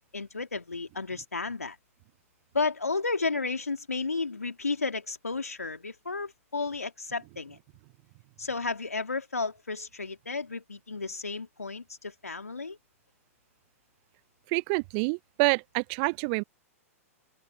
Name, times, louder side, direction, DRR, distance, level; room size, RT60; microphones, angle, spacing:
voice 1, 0.0-1.8 2.5-7.6 8.4-12.8, left 4 dB, 90° left, 2.8 m, -33 dB
voice 2, 14.5-16.4, right 35 dB, 40° right, 0.4 m, -27 dB
open air
figure-of-eight pair, 105°, 8 cm